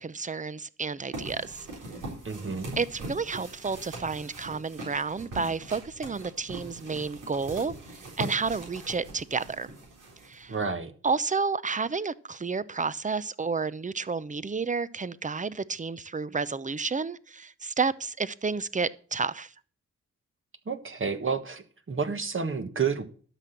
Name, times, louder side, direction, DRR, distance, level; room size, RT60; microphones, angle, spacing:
voice 1, 0.0-1.7 2.8-7.7 8.2-9.7 10.2-10.5 11.0-19.5, right 4 dB, 25° right, 0.7 m, -31 dB
sound 1, 1.1-10.6, right 1 dB, 90° right, 4.1 m, -41 dB
voice 2, 2.2-2.7 10.5-10.9 20.7-23.1, right 5 dB, 40° right, 1.5 m, -30 dB
12.5 x 6.0 x 6.8 m
cardioid pair, 60°, 30 cm